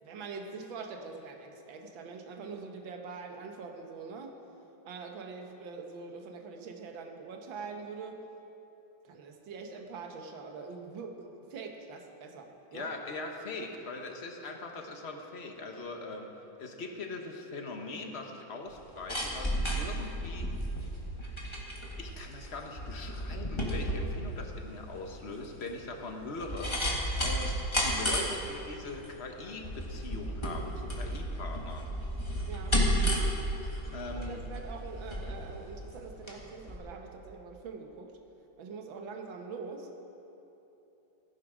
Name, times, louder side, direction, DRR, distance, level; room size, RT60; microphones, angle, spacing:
voice 1, 0.0-4.4 4.9-8.2 9.0-12.9 32.5-32.8 34.1-38.1 38.6-39.9, right 4 dB, 80° right, 3 dB, 1.9 m, -43 dB
voice 2, 12.7-16.3 16.6-20.5 22.0-31.9 33.9-34.4, left 3 dB, 40° left, 3 dB, 1.2 m, -41 dB
sound 1, 18.7-36.4 36.7-36.8, equal, 15° left, 1.7 m, -33 dB
16.5 x 11.0 x 5.0 m, 3.0 s
omnidirectional pair, 2.1 m